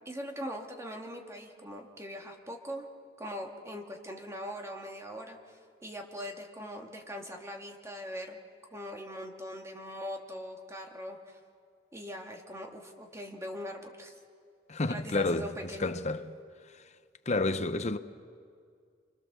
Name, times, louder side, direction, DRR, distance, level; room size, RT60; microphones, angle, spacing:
voice 1, 0.1-2.8 3.2-8.4 8.7-11.4 11.9-14.1 14.9-15.9, equal, 15° right, 2.3 m, -41 dB
voice 2, 14.7-15.5 15.8-16.2 17.3-18.0, left 2 dB, 40° left, 0.9 m, -29 dB
28.0 x 25.5 x 7.0 m
head